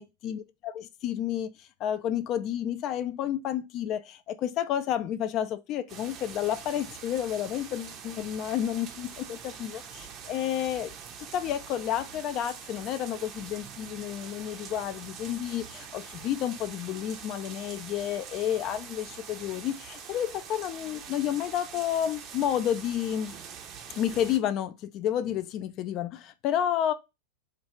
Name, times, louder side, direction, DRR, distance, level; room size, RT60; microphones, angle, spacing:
voice 1, 0.0-23.3 24.0-26.9, left 10 dB, 35° left, 0.3 m, -31 dB
sound 1, 5.9-24.4, right 7 dB, 35° right, 0.5 m, -44 dB
3.2 x 2.3 x 3.0 m
figure-of-eight pair, 90°, 0 cm